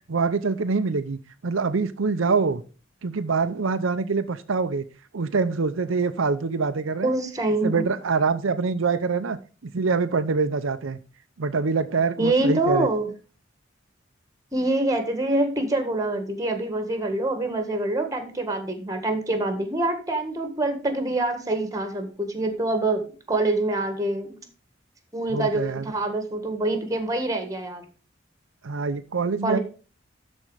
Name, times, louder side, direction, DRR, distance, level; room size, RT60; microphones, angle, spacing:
voice 1, 0.1-2.6 3.0-4.8 5.1-7.1 7.6-11.0 11.4-12.9 25.3-25.9 28.6-29.6, right 4 dB, 85° right, 10 dB, 0.6 m, -25 dB
voice 2, 7.0-7.9 12.2-13.1 14.5-23.0 23.3-24.4 25.1-27.8 29.4-29.6, right 2 dB, 20° right, 7 dB, 1.7 m, -25 dB
12.5 x 4.4 x 5.0 m, 0.36 s
head